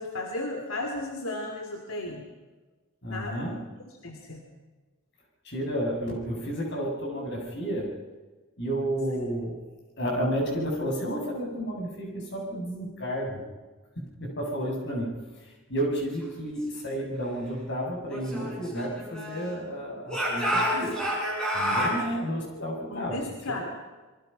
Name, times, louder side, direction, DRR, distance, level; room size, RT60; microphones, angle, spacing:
voice 1, 0.0-2.2 3.1-3.5 4.0-4.4 22.9-23.6, left 2 dB, 80° left, 3 dB, 2.8 m, -34 dB
voice 2, 3.0-3.7 5.4-7.9 8.6-9.6 10.0-13.4 14.0-21.0 21.5-23.3, equal, 55° left, 0 dB, 7.8 m, -31 dB
Speech / Shout, 18.1-19.6 20.1-22.0, equal, 5° left, 7.9 m, -29 dB
27.0 x 23.0 x 5.7 m, 1.3 s
head